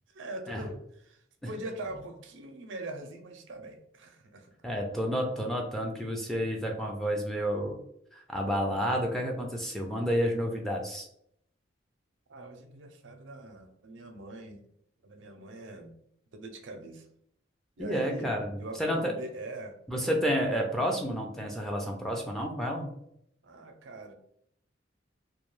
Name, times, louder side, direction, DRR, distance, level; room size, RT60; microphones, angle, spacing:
voice 1, 0.1-4.5 12.3-14.6 15.0-15.9 16.3-17.1 17.8-18.3 18.6-19.7 23.4-24.1, right 2 dB, 80° right, 6 dB, 0.5 m, -42 dB
voice 2, 4.6-7.8 8.1-11.1 17.8-19.1 19.9-22.9, equal, ahead, 0 dB, 0.4 m, -30 dB
2.3 x 2.2 x 3.0 m, 0.71 s
head